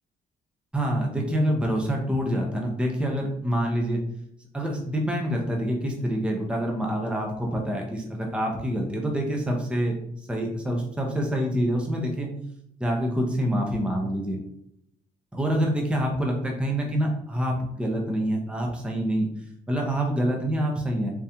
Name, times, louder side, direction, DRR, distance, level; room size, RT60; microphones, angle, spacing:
voice 1, 0.7-4.0 4.5-10.0 10.3-12.3 12.8-14.4 15.3-19.3 19.7-21.1, equal, 5° right, 0 dB, 0.7 m, -26 dB
3.5 x 3.1 x 2.8 m, 0.75 s
cardioid pair, 110°, 17 cm